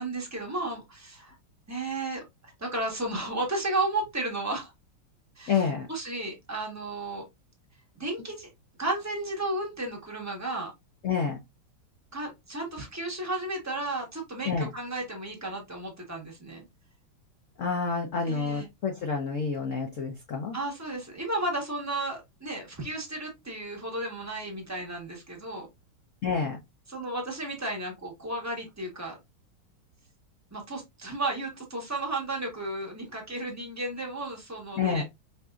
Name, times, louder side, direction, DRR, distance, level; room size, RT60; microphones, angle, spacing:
voice 1, 0.0-1.4 1.7-4.7 5.4-7.2 8.0-8.5 8.8-10.7 12.1-16.6 18.2-18.7 20.5-25.7 26.9-29.2 30.5-35.0, right 2 dB, 15° right, 0 dB, 0.7 m, -33 dB
voice 2, 5.5-5.9 11.0-11.4 14.5-14.7 17.6-20.6 26.2-26.6 34.8-35.0, left 5 dB, 80° left, 3 dB, 0.6 m, -28 dB
5.3 x 2.6 x 2.4 m, 0.20 s
omnidirectional pair, 2.3 m